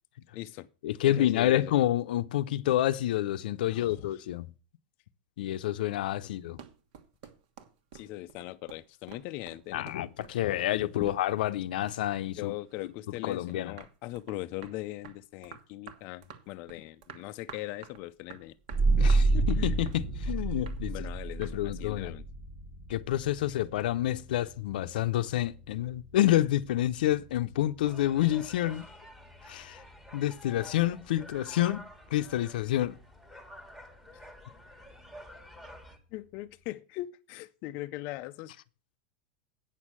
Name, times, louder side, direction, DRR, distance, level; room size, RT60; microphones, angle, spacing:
voice 1, 0.3-0.7 1.0-1.7 3.7-4.2 6.2-6.3 7.9-9.9 11.0-11.1 12.4-18.5 19.0-19.1 19.3-19.8 20.9-22.2 23.4-23.6 34.1-34.2 36.1-38.6, left 16 dB, 35° left, 0.5 m, -40 dB
voice 2, 0.8-4.5 5.4-6.6 9.7-12.5 13.2-13.7 19.0-20.9 21.4-22.1 22.9-28.9 29.5-29.8 30.1-33.0, left 13 dB, 75° left, 0.7 m, -28 dB
sound 1, 6.3-11.6 11.9-12.9 13.3-21.6, right 8 dB, 55° right, 1.4 m, -50 dB
sound 2, 18.7-30.0, right 3 dB, 35° right, 1.5 m, -31 dB
sound 3, 27.8-36.0, equal, 5° right, 1.4 m, -50 dB
9.0 x 6.4 x 7.4 m
supercardioid pair, 170°, 5 cm